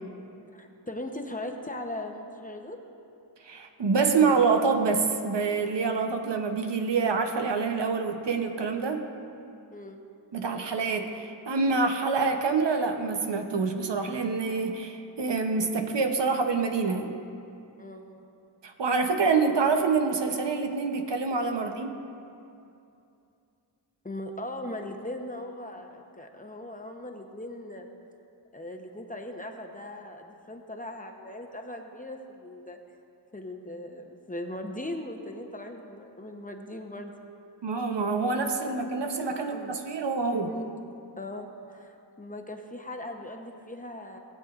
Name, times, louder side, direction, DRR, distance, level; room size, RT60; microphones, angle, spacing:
voice 1, 0.5-2.8 9.7-10.0 17.8-18.2 21.6-21.8 24.0-27.9 28.5-32.8 33.3-37.1 39.5-39.7 40.3-40.7 41.2-44.2, left 1 dB, 20° left, 3 dB, 0.8 m, -39 dB
voice 2, 3.4-9.1 10.3-17.1 18.6-21.9 37.6-40.5, right 4 dB, 75° right, 5 dB, 0.8 m, -26 dB
18.5 x 7.8 x 2.5 m, 2.6 s
wide cardioid pair, 60°, 43 cm